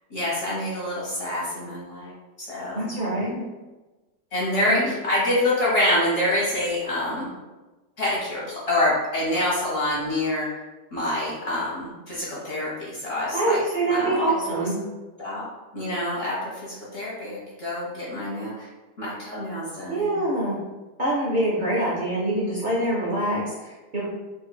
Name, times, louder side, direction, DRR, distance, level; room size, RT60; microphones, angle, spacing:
voice 1, 0.1-2.1 2.5-2.8 4.3-7.3 8.0-10.5 10.9-13.6 13.9-14.3 15.2-15.4 15.7-18.7 19.0-20.1, left 1 dB, 40° left, -7 dB, 1.3 m, -26 dB
voice 2, 2.7-3.5 4.7-4.9 13.3-14.8 19.9-20.6 21.0-24.1, right 1 dB, 55° right, -6 dB, 0.5 m, -25 dB
4.5 x 2.6 x 2.2 m, 1.2 s
omnidirectional pair, 1.7 m